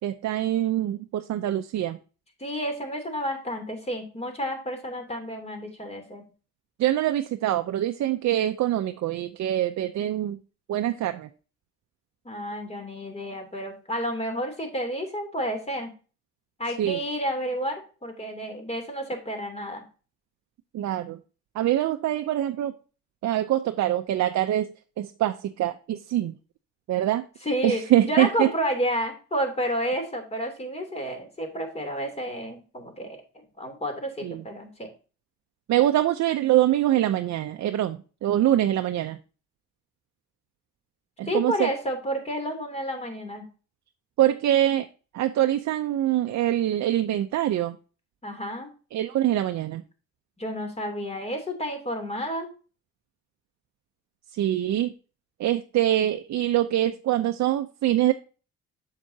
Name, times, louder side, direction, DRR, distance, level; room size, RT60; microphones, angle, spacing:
voice 1, 0.0-2.0 6.8-10.4 10.7-11.3 16.8-17.0 20.7-21.2 21.5-22.7 23.2-26.4 26.9-27.3 27.6-28.5 34.2-34.4 35.7-39.2 41.2-41.7 44.2-44.9 45.1-47.8 48.9-49.8 54.3-54.9 55.4-58.1, right 13 dB, 65° right, 7 dB, 0.6 m, -24 dB
voice 2, 2.4-6.2 12.2-15.9 16.6-19.8 27.4-33.2 33.6-34.9 41.3-43.4 48.2-48.7 50.4-52.5, equal, 20° left, 4 dB, 2.9 m, -30 dB
7.7 x 7.4 x 2.8 m, 0.35 s
cardioid pair, 90°, 30 cm